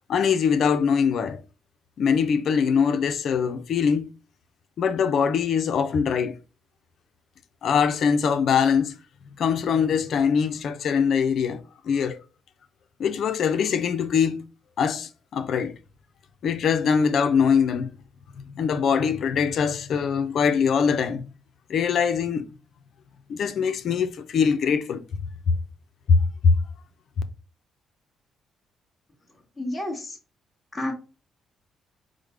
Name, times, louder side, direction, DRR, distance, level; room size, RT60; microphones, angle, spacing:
voice 1, 0.1-1.4 2.0-4.1 4.8-6.4 7.6-9.0 9.4-12.2 13.0-14.5 14.8-15.8 16.4-17.9 18.6-21.2 21.7-22.5 23.3-25.0 26.1-26.2 26.4-26.5, left 6 dB, 65° left, 0.6 m, -22 dB
voice 2, 29.6-30.2 30.7-30.9, left 1 dB, 10° left, 1.4 m, -30 dB
4.9 x 2.2 x 4.8 m
cardioid pair, 90°, 0 cm